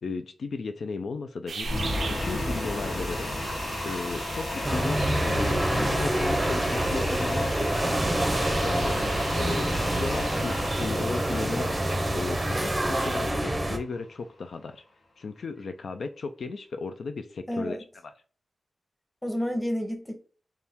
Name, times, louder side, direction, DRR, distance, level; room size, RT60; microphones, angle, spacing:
voice 1, 0.0-1.9 2.2-3.3 3.8-8.2 8.6-9.0 9.3-11.7 12.1-14.8 15.2-17.8, left 4 dB, 75° left, 0.4 m, -35 dB
sound 1, 1.5-13.3, right 5 dB, 80° right, 0.4 m, -40 dB
sound 2, 1.6-13.8, left 1 dB, 55° left, 1.0 m, -33 dB
sound 3, 4.6-13.8, right 1 dB, 15° right, 0.6 m, -27 dB
voice 2, 11.4-11.9 17.5-17.8 19.2-20.2, equal, 10° left, 0.9 m, -31 dB
4.3 x 2.3 x 3.5 m
wide cardioid pair, 135°, 0 cm